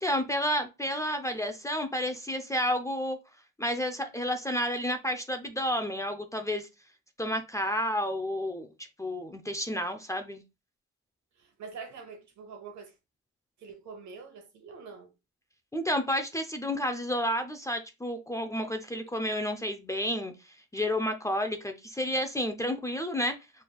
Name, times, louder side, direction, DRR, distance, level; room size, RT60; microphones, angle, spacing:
voice 1, 0.0-3.2 3.6-6.7 7.2-8.7 9.0-10.4 15.7-20.3 20.7-23.4, equal, 10° left, 0.5 m, -30 dB
voice 2, 11.4-12.9 13.6-15.1, right 5 dB, 65° right, 1.2 m, -45 dB
4.5 x 3.3 x 2.3 m
cardioid pair, 90°, 30 cm